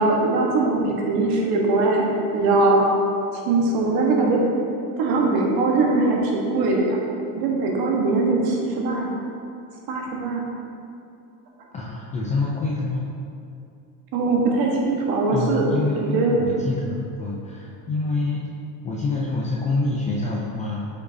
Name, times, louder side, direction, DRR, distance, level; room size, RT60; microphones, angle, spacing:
voice 1, 0.0-2.8 3.4-4.4 5.0-7.0 7.3-9.1 9.9-10.4 14.1-15.7 16.0-16.4, right 3 dB, 50° right, -1 dB, 1.3 m, -21 dB
voice 2, 11.7-13.1 15.3-18.4 18.8-20.9, left 3 dB, 20° left, -4 dB, 0.3 m, -26 dB
7.9 x 5.4 x 2.7 m, 2.5 s
supercardioid pair, 125°, 47 cm